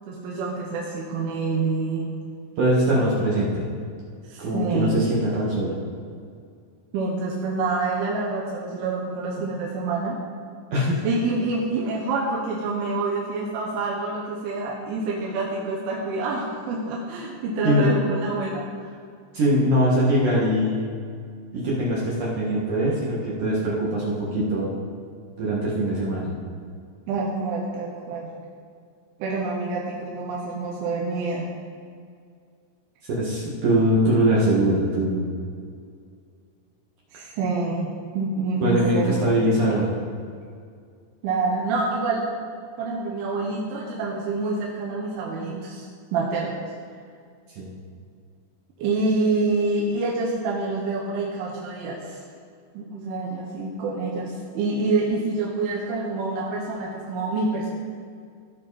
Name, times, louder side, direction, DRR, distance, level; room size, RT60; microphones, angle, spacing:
voice 1, 0.1-2.1 4.3-4.9 6.9-10.2 11.0-18.7 27.1-28.3 29.2-31.5 37.1-37.9 38.2-39.2 41.2-42.3 42.8-45.9 46.1-46.6 48.8-52.2 52.8-57.7, right 3 dB, 90° right, -3 dB, 3.6 m, -27 dB
voice 2, 2.6-3.7 4.4-5.7 10.7-11.0 17.6-18.0 19.3-20.9 21.5-24.7 25.4-26.3 33.1-35.3 38.6-39.9 47.6-47.7, equal, 55° right, -6 dB, 2.4 m, -22 dB
17.0 x 5.9 x 4.1 m, 2.2 s
omnidirectional pair, 5.4 m